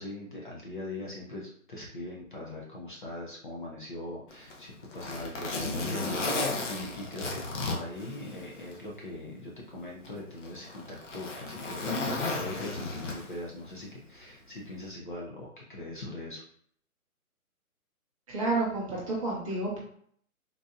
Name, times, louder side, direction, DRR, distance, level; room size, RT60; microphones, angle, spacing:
voice 1, 0.0-16.4, left 2 dB, 35° left, -4 dB, 0.5 m, -41 dB
Zipper (clothing), 4.3-8.8 9.2-9.3 10.0-13.5 14.7-14.9, left 2 dB, 55° left, 0.9 m, -34 dB
voice 2, 18.3-19.8, right 2 dB, 25° right, -5 dB, 0.8 m, -30 dB
3.9 x 2.6 x 2.3 m, 0.62 s
hypercardioid pair, 155°, 44 cm